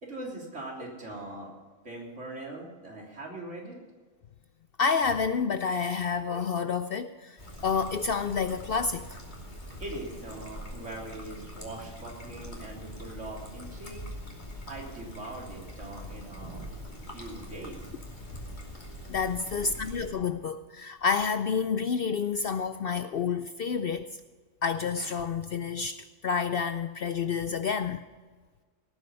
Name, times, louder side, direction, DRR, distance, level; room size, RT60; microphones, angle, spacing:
voice 1, 0.0-1.5 1.8-3.8 9.8-14.0 14.7-16.7 17.1-17.9, right 2 dB, 65° right, 3.7 m, -41 dB
voice 2, 4.8-7.4 7.6-9.2 19.1-24.2 24.6-28.0, left 5 dB, 60° left, 0.6 m, -29 dB
Trickle dribble, 7.4-20.1, equal, 35° left, 2.9 m, -43 dB
17.5 x 9.4 x 5.5 m
omnidirectional pair, 1.3 m